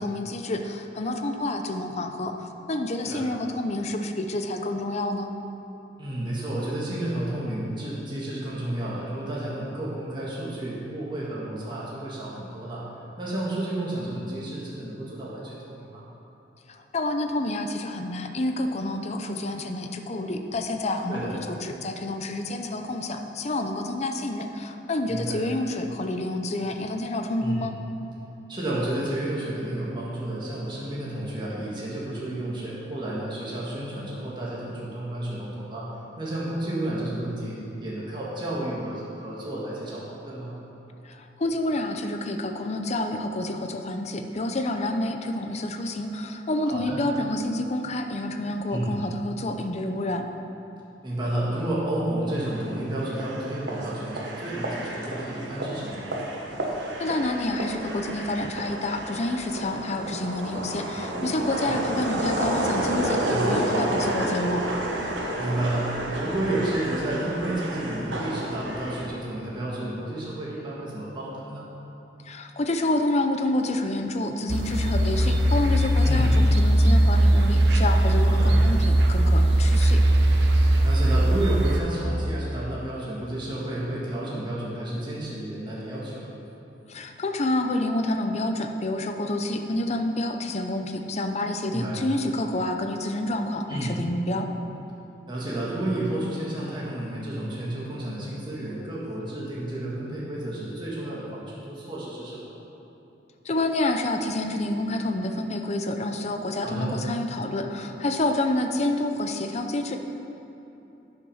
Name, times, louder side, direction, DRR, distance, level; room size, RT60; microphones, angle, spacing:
voice 1, 0.0-5.3 16.7-27.7 41.0-50.2 57.0-64.6 72.2-80.0 86.9-94.5 103.4-110.0, left 1 dB, 40° left, 5 dB, 0.6 m, -28 dB
voice 2, 6.0-12.8 13.2-16.0 21.1-21.4 25.1-25.4 27.4-27.6 28.5-35.9 36.2-40.5 46.6-47.0 48.7-48.9 51.0-56.1 61.4-61.7 63.2-63.5 65.4-71.7 76.0-76.3 78.2-78.6 80.8-86.3 91.7-92.0 93.7-94.0 95.3-102.5 106.6-107.0, right 1 dB, 25° right, -7 dB, 1.7 m, -31 dB
sound 1, 52.4-69.1, right 1 dB, 90° right, 1.2 m, -30 dB
sound 2, 74.5-81.8, right 1 dB, 70° right, 0.8 m, -19 dB
10.5 x 6.0 x 5.6 m, 3.0 s
head